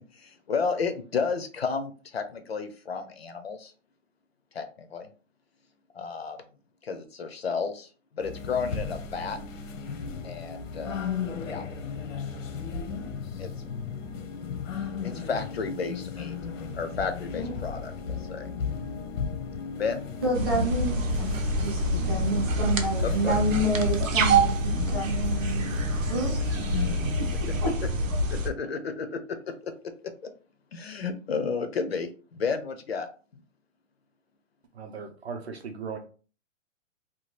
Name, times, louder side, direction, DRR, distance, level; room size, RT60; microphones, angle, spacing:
voice 1, 0.1-3.7 4.5-5.1 5.9-6.5 6.8-7.9 8.1-9.4 10.2-11.1 11.5-11.7 13.4-13.5 15.0-16.4 16.7-18.5 19.8-20.0 23.2-23.4 28.3-29.7 30.2-30.3 30.7-33.1, left 5 dB, 55° left, 8 dB, 0.4 m, -32 dB
sound 1, 8.2-27.6, left 6 dB, 85° left, 0.7 m, -36 dB
voice 2, 20.2-26.3 27.2-27.7, right 1 dB, 20° right, -4 dB, 0.7 m, -29 dB
sound 2, 20.3-28.5, right 1 dB, 90° right, 0.8 m, -26 dB
voice 3, 34.7-36.0, right 5 dB, 55° right, 6 dB, 0.6 m, -37 dB
2.8 x 2.2 x 3.0 m, 0.38 s
hypercardioid pair, 180°, 38 cm